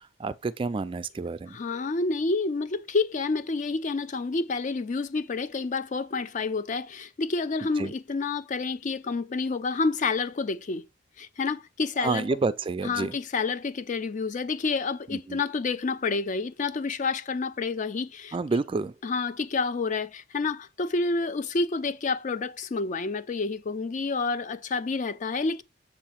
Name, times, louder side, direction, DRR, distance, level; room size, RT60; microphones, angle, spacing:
voice 1, 0.2-1.6 7.8-7.9 12.0-13.2 15.1-15.4 18.3-18.9, right 3 dB, 30° right, 0.3 m, -29 dB
voice 2, 1.5-10.9 11.2-12.4 12.8-18.4 19.0-25.6, left 4 dB, 40° left, 0.4 m, -29 dB
7.0 x 2.7 x 5.7 m
head